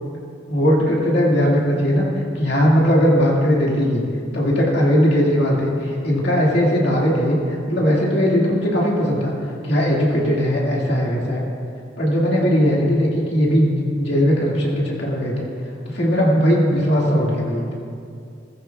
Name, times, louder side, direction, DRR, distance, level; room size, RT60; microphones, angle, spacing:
voice 1, 0.5-2.1 2.4-4.0 4.3-9.3 9.6-11.4 12.0-13.7 14.0-15.5 15.9-17.8, equal, 65° left, -4 dB, 1.9 m, -18 dB
15.0 x 15.0 x 2.3 m, 2.4 s
head